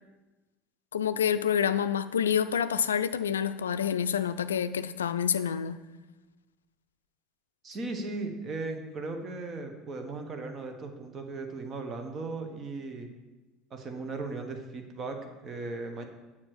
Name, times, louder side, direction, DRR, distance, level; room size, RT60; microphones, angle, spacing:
voice 1, 0.9-5.8, left 8 dB, 75° left, 13 dB, 0.3 m, -28 dB
voice 2, 7.6-13.1 13.7-16.0, right 3 dB, 35° right, 5 dB, 1.3 m, -37 dB
7.7 x 5.7 x 6.1 m, 1.1 s
figure-of-eight pair, 70°, 0 cm